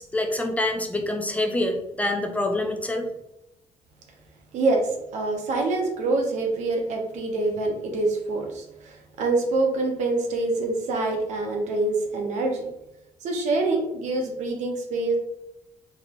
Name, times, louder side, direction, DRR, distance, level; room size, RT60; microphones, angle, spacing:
voice 1, 0.0-3.1, left 1 dB, 10° left, 3 dB, 0.5 m, -26 dB
voice 2, 4.5-12.7 13.2-15.2, right 2 dB, 75° right, 2 dB, 1.0 m, -25 dB
4.0 x 3.2 x 3.0 m, 0.88 s
cardioid pair, 130°, 12 cm